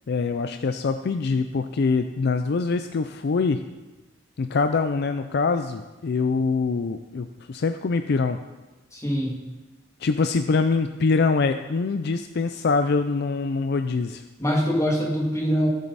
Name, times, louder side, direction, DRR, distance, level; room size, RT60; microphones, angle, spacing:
voice 1, 0.1-3.6 4.4-8.4 10.0-14.2, left 4 dB, 55° left, 8 dB, 0.4 m, -24 dB
voice 2, 8.9-9.4 14.4-15.7, equal, 15° left, -2 dB, 2.1 m, -23 dB
15.0 x 7.5 x 4.1 m, 1.1 s
head